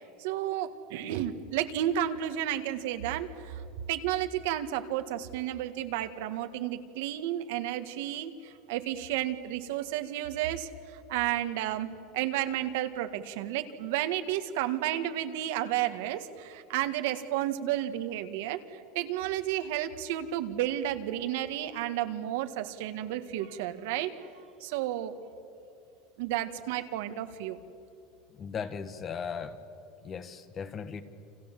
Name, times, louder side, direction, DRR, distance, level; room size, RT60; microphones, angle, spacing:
voice 1, 0.2-3.6 3.9-11.9 12.1-24.1 24.6-25.1 26.2-27.6, right 12 dB, 75° right, 8 dB, 1.8 m, -32 dB
voice 2, 28.4-29.6 30.0-31.0, left 6 dB, 30° left, 11 dB, 1.5 m, -37 dB
30.0 x 26.0 x 7.6 m, 2.7 s
supercardioid pair, 145°, 0 cm